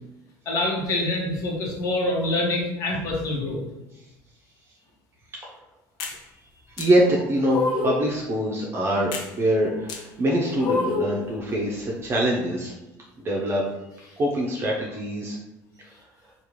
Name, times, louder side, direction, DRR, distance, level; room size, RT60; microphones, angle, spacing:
voice 1, 0.5-3.6, left 2 dB, 50° left, -2 dB, 1.1 m, -25 dB
sound 1, 6.0-6.2 6.8-6.9 7.5-8.0 9.1-9.3 9.9-10.0 10.6-11.2, left 3 dB, 65° left, 0.7 m, -26 dB
voice 2, 6.7-12.7 13.2-13.6 14.2-15.4, right 1 dB, 30° right, -3 dB, 0.7 m, -24 dB
3.5 x 2.4 x 3.1 m, 0.98 s
supercardioid pair, 100°, 8 cm